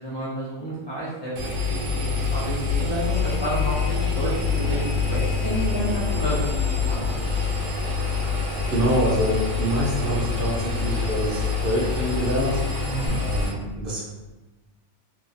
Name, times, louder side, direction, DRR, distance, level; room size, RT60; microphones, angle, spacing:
voice 1, 0.0-7.1 12.9-13.2, right 1 dB, 45° left, -8 dB, 0.3 m, -30 dB
Engine, 1.4-13.5, left 5 dB, 80° right, 1.0 m, -26 dB
Bird vocalization bird call bird song, 4.4-13.1, left 1 dB, 60° left, 0.8 m, -39 dB
voice 2, 8.7-12.6 13.2-14.0, equal, 55° right, -5 dB, 0.8 m, -25 dB
2.8 x 2.3 x 2.5 m, 1.1 s
omnidirectional pair, 1.2 m